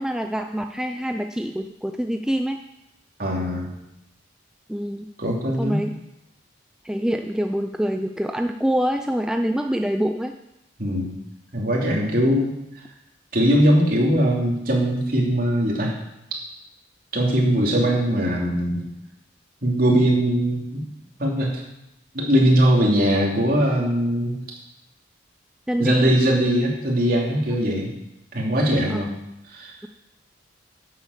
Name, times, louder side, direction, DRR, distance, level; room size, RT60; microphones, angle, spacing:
voice 1, 0.0-2.6 4.7-5.1 5.6-5.9 6.8-10.3 25.7-26.1 28.9-29.0, equal, 5° right, 5 dB, 0.4 m, -25 dB
voice 2, 3.2-3.7 5.2-5.8 10.8-11.1 11.5-12.5 13.3-15.9 17.1-18.8 19.6-20.8 21.2-21.6 22.1-24.4 25.8-27.9 28.3-29.1 29.5-29.7, equal, 45° right, -2 dB, 3.2 m, -20 dB
11.0 x 8.0 x 7.3 m, 0.87 s
head